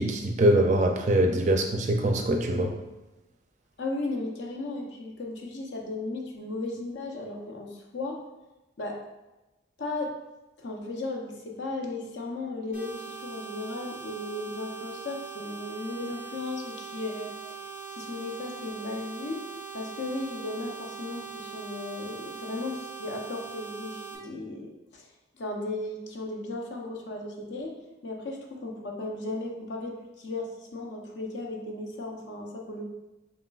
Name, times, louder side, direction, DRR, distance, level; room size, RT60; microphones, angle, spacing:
voice 1, 0.0-2.7, right 1 dB, 40° right, 3 dB, 0.4 m, -23 dB
voice 2, 3.8-8.2 8.8-9.0 9.8-10.2 10.6-19.4 19.7-25.1 25.3-27.8 28.0-32.9, left 2 dB, 70° left, 0 dB, 0.7 m, -35 dB
sound 1, 12.7-24.1, right 5 dB, 40° left, 0.8 m, -41 dB
5.1 x 3.0 x 2.3 m, 1.0 s
head